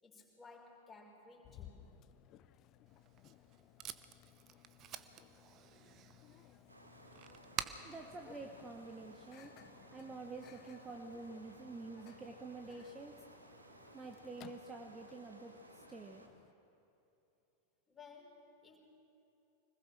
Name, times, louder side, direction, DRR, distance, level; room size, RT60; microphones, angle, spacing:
voice 1, 0.0-1.8 17.9-18.8, left 4 dB, 15° left, -1 dB, 5.0 m, -57 dB
Microwave oven, 1.4-16.5, left 11 dB, 35° left, 0.8 m, -61 dB
Packing tape duct tape, 2.9-9.3, right 10 dB, 35° right, 0.9 m, -49 dB
sound 1, 6.7-16.3, right 1 dB, 80° right, 2.1 m, -59 dB
voice 2, 7.8-9.5 9.9-13.1 13.9-16.3, right 3 dB, 15° right, 3 dB, 1.3 m, -48 dB
25.5 x 20.5 x 6.3 m, 2.9 s
figure-of-eight pair, 90°, 0 cm